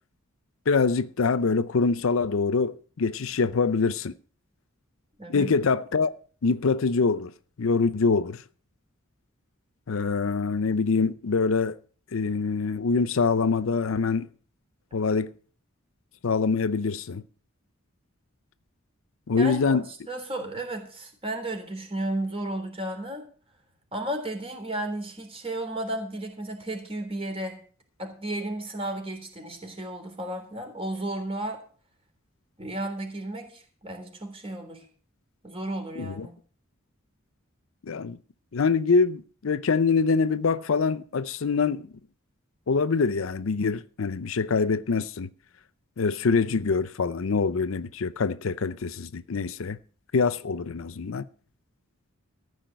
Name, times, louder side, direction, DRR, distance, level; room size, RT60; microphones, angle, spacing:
voice 1, 0.7-4.1 5.3-6.2 6.4-7.3 7.6-8.4 9.9-11.8 12.1-14.3 14.9-15.3 16.2-17.2 19.3-19.8 36.0-36.3 37.8-38.2 38.5-41.9 42.7-45.3 46.0-49.8 50.1-51.3, left 4 dB, 70° left, 0.6 m, -24 dB
voice 2, 5.2-5.5 19.4-19.8 20.1-23.3 23.9-27.6 28.0-31.6 32.6-34.8 35.4-36.3, right 1 dB, 30° right, 3.5 m, -33 dB
14.5 x 5.3 x 9.0 m
head